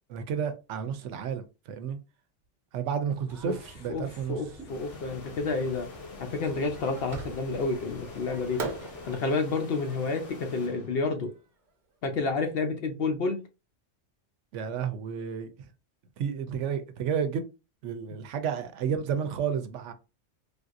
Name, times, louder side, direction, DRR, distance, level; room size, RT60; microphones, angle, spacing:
voice 1, 0.1-2.0 2.7-4.4 14.5-15.5 16.2-17.4 17.8-19.9, right 7 dB, 80° right, 0.9 m, -31 dB
sound 1, 3.3-9.2, equal, ahead, 0.8 m, -50 dB
voice 2, 3.9-5.9 6.2-8.6 9.1-11.3 12.0-13.4, left 3 dB, 60° left, 0.7 m, -30 dB
sound 2, 4.7-11.3, left 3 dB, 85° left, 1.2 m, -45 dB
Fireworks, 7.1-7.8 8.6-11.7, right 3 dB, 50° right, 0.7 m, -40 dB
3.4 x 2.6 x 2.4 m
omnidirectional pair, 1.2 m